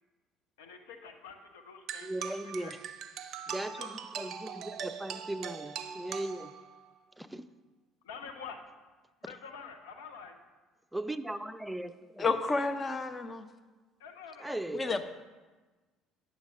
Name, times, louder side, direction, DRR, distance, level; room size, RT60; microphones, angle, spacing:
voice 1, 0.6-2.2 2.6-2.7 3.6-3.9 8.0-8.6 9.2-10.4 14.0-14.6, left 6 dB, 70° left, 5 dB, 0.8 m, -47 dB
sound 1, 1.9-6.9, right 8 dB, 50° right, 0.5 m, -41 dB
voice 2, 2.0-2.8 3.5-6.5 7.2-7.5 10.9-12.3 14.4-15.1, right 1 dB, 5° right, 10 dB, 0.5 m, -38 dB
voice 3, 12.2-13.5 14.7-15.1, left 3 dB, 30° left, 8 dB, 0.7 m, -31 dB
9.6 x 7.0 x 3.8 m, 1.3 s
figure-of-eight pair, 55°, 0 cm